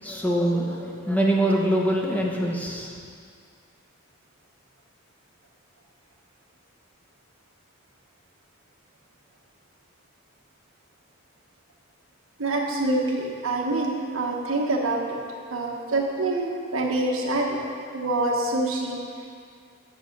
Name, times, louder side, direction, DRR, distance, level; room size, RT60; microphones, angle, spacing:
voice 1, 0.0-2.9, right 1 dB, 10° left, -2 dB, 0.9 m, -24 dB
voice 2, 12.4-15.0 15.5-17.7 17.9-19.0, right 2 dB, 85° right, 0 dB, 1.3 m, -26 dB
8.1 x 6.5 x 6.0 m, 2.2 s
head